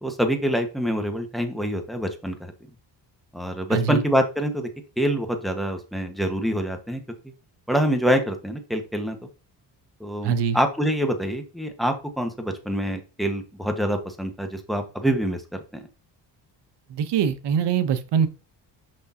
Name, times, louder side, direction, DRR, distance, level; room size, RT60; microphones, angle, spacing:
voice 1, 0.0-2.5 3.3-4.7 5.0-7.0 7.7-9.2 10.0-15.8, equal, ahead, 1.4 m, -25 dB
voice 2, 3.7-4.0 10.2-10.6 16.9-18.3, right 7 dB, 70° right, 0.9 m, -23 dB
6.1 x 5.9 x 2.8 m
cardioid pair, 90°, 43 cm